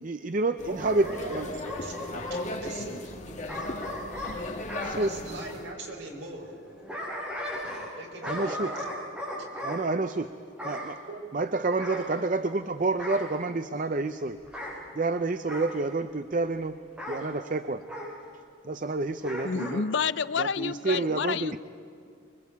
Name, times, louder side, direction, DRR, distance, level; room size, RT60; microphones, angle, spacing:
voice 1, 0.0-1.5 4.8-5.1 8.2-8.7 9.6-10.3 10.6-11.0 11.3-14.4 14.9-16.7 17.1-17.8 18.6-19.8 20.4-21.6, right 3 dB, 40° right, 10 dB, 0.6 m, -29 dB
sound 1, 0.6-5.7, left 1 dB, 35° left, 1.6 m, -37 dB
voice 2, 0.7-3.0 4.9-6.5 8.0-8.8 9.6-9.7 11.1-11.2, right 2 dB, 60° right, 1 dB, 4.9 m, -41 dB
Bark / Growling, 0.8-2.4 3.5-4.9 6.6-8.0 8.2-9.8 10.6-10.9 11.8-12.6 13.0-13.3 14.4-14.8 15.5-15.8 17.0-17.2 17.9-18.1 19.2-19.8 20.2-20.3, equal, 5° right, 7.3 m, -36 dB
voice 3, 19.4-21.6, left 6 dB, 65° left, 16 dB, 0.5 m, -29 dB
25.0 x 23.0 x 8.3 m, 2.4 s
head